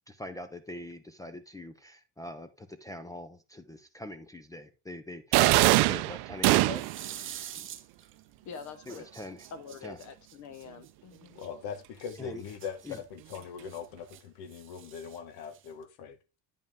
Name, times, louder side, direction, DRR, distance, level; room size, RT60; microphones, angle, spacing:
voice 1, 0.1-6.8 8.9-9.4 9.8-10.0 12.2-12.4 12.8-13.0, left 1 dB, 10° left, 0.3 m, -43 dB
sound 1, 5.3-7.1, right 20 dB, 75° right, 0.5 m, -22 dB
sound 2, 6.7-8.2 8.5-11.5 12.0-14.2 14.5-15.8, right 10 dB, 30° right, 0.6 m, -46 dB
voice 2, 8.4-9.1 9.5-11.4, left 5 dB, 50° left, 0.7 m, -45 dB
voice 3, 11.3-16.2, left 6 dB, 90° left, 1.1 m, -41 dB
9.1 x 5.3 x 3.5 m
cardioid pair, 160°, 39 cm